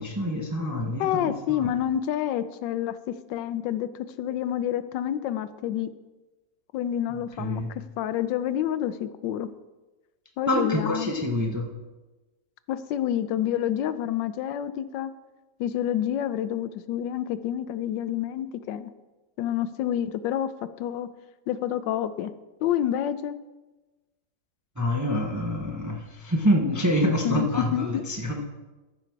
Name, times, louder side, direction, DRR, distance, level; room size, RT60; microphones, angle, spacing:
voice 1, 0.0-1.7 7.4-7.7 10.5-11.7 24.8-28.5, equal, 20° right, 1 dB, 0.5 m, -26 dB
voice 2, 1.0-3.9 4.2-5.9 6.7-9.5 10.4-11.1 12.7-15.1 15.6-18.9 19.4-20.5 20.8-21.1 21.5-22.3 22.6-23.4 27.2-28.0, left 11 dB, 90° left, 13 dB, 1.3 m, -28 dB
14.0 x 5.8 x 4.5 m, 1.2 s
omnidirectional pair, 1.9 m